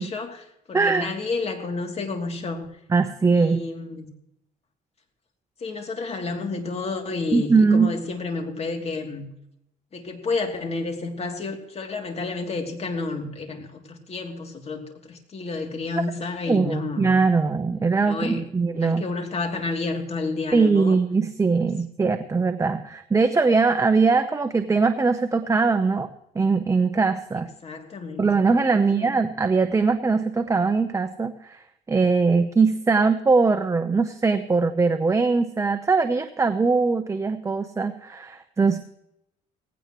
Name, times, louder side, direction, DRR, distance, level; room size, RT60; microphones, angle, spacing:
voice 1, 0.0-2.7 3.3-4.1 5.6-9.3 9.9-17.1 17.9-18.4 18.7-21.0 27.6-28.3 28.7-29.2, left 3 dB, 40° left, 4 dB, 3.0 m, -30 dB
voice 2, 0.7-1.1 2.9-3.6 7.3-7.9 16.5-19.0 20.5-26.1 26.3-27.5 28.2-38.8, right 4 dB, 20° right, 8 dB, 0.9 m, -21 dB
18.0 x 16.5 x 3.1 m, 0.79 s
cardioid pair, 110°, 17 cm